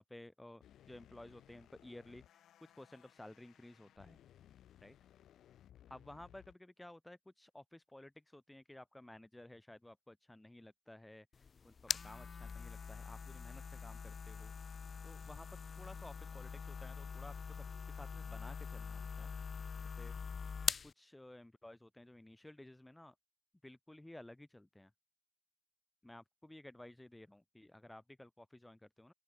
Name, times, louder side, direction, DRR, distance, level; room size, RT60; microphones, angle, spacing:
voice 1, 0.0-2.4 2.8-4.2 4.8-5.0 5.9-14.5 15.0-19.3 19.8-20.1 20.8-23.1 23.6-24.9 26.0-29.1, left 1 dB, 15° left, 1.2 m, -55 dB
sound 1, 0.6-6.5, left 11 dB, 85° left, 1.4 m, -63 dB
sound 2, 11.3-20.9, left 5 dB, 60° left, 0.9 m, -43 dB
open air
supercardioid pair, 50°, 0 cm